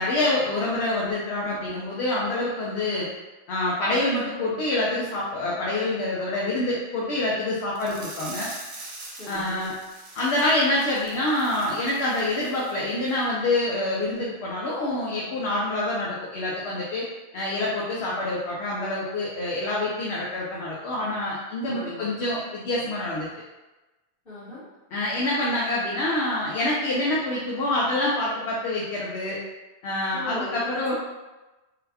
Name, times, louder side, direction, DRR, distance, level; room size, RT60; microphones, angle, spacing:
voice 1, 0.0-3.1 3.5-8.5 9.3-9.7 10.1-17.1 17.3-23.3 24.9-29.4 29.8-31.0, left 2 dB, 70° left, -5 dB, 0.8 m, -26 dB
sound 1, 7.8-12.8 13.1-13.2 13.6-13.7, right 2 dB, 45° right, 0.5 m, -43 dB
voice 2, 9.2-9.7 18.0-18.2 21.7-22.1 24.3-24.6 30.1-31.0, left 1 dB, 55° left, -11 dB, 1.8 m, -37 dB
4.0 x 2.2 x 2.7 m, 1.1 s
omnidirectional pair, 1.2 m